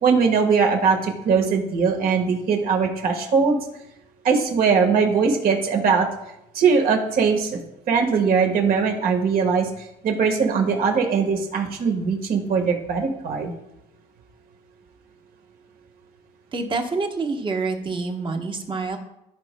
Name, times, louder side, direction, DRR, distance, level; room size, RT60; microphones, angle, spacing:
voice 1, 0.0-3.6 4.2-6.1 6.5-7.6 7.9-9.7 10.0-13.5, right 5 dB, 60° right, 3 dB, 1.5 m, -20 dB
voice 2, 16.5-19.0, right 3 dB, 30° right, 4 dB, 1.2 m, -27 dB
14.5 x 5.1 x 2.2 m, 0.86 s
cardioid pair, 110°, 17 cm